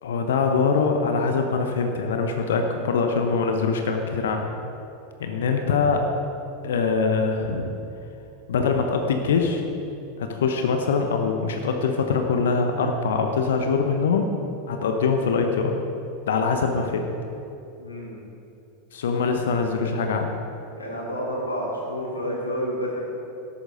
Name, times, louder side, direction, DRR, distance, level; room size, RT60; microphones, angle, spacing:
voice 1, 0.0-4.5 5.2-6.1 6.6-7.7 8.5-9.6 10.2-14.3 14.7-15.7 16.3-17.1 18.9-20.3, left 5 dB, 65° left, 4 dB, 1.0 m, -23 dB
voice 2, 17.8-18.2 20.8-23.0, equal, 85° left, -3 dB, 2.8 m, -30 dB
13.0 x 11.5 x 4.0 m, 2.7 s
figure-of-eight pair, 85°, 0 cm